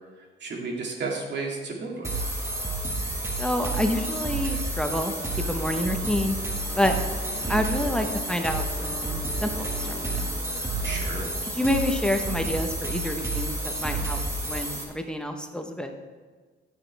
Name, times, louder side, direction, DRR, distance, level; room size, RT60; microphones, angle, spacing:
voice 1, 0.4-2.1 7.4-7.7 10.8-11.3, right 3 dB, 60° right, -1 dB, 2.3 m, -33 dB
sound 1, 2.0-14.8, right 2 dB, 15° right, 1.9 m, -30 dB
voice 2, 3.4-5.1 5.5-6.3 6.8-6.9 7.5-10.3 11.5-14.2 14.5-15.9, left 1 dB, 5° left, 4 dB, 1.0 m, -28 dB
sound 2, 3.6-11.9, equal, 30° left, 1.9 m, -42 dB
14.5 x 6.5 x 3.4 m, 1.4 s
cardioid pair, 90°, 20 cm